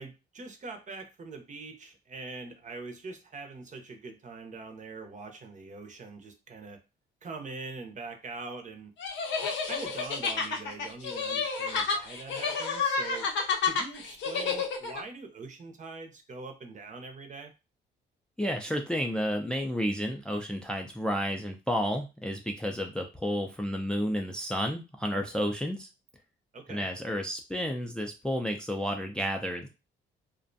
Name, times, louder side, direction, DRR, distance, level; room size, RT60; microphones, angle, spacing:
voice 1, 0.0-6.8 7.2-8.9 9.6-13.3 13.6-17.5 26.5-26.9, right 3 dB, 40° right, 6 dB, 0.6 m, -43 dB
sound 1, 9.0-15.0, left 5 dB, 70° left, 0.6 m, -30 dB
voice 2, 18.4-25.9 26.7-29.7, equal, 5° left, 3 dB, 0.4 m, -31 dB
2.4 x 2.1 x 2.6 m, 0.28 s
cardioid pair, 90°, 20 cm